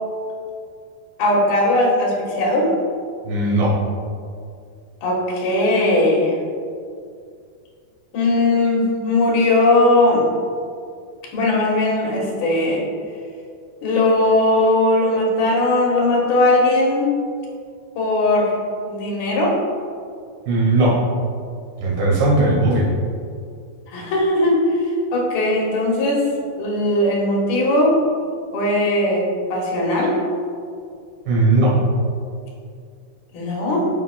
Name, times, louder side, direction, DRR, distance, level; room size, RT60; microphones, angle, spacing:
voice 1, 1.2-2.7 5.0-6.4 8.1-10.3 11.3-12.8 13.8-17.1 18.0-18.5 18.8-19.6 23.9-26.2 26.6-27.9 28.5-30.2 33.3-33.8, left 1 dB, 85° left, -3 dB, 3.3 m, -18 dB
voice 2, 3.2-3.8 20.5-21.0 21.8-22.9 31.3-31.8, right 2 dB, 85° right, -4 dB, 3.5 m, -17 dB
12.5 x 5.6 x 2.2 m, 2.3 s
omnidirectional pair, 4.1 m